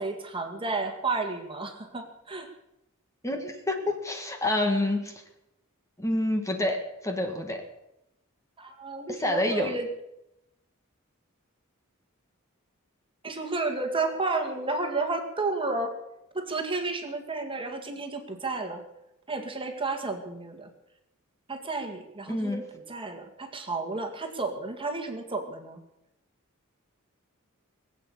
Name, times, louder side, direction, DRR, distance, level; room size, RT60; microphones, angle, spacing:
voice 1, 0.0-2.5 8.6-9.9 13.2-15.9 16.3-18.8 19.3-20.7 21.5-25.8, right 3 dB, 25° right, 4 dB, 2.0 m, -32 dB
voice 2, 3.2-5.2 6.0-6.8 7.0-7.6 9.1-9.8 22.3-22.6, left 1 dB, 15° left, 4 dB, 1.7 m, -28 dB
20.5 x 8.3 x 8.5 m, 0.88 s
head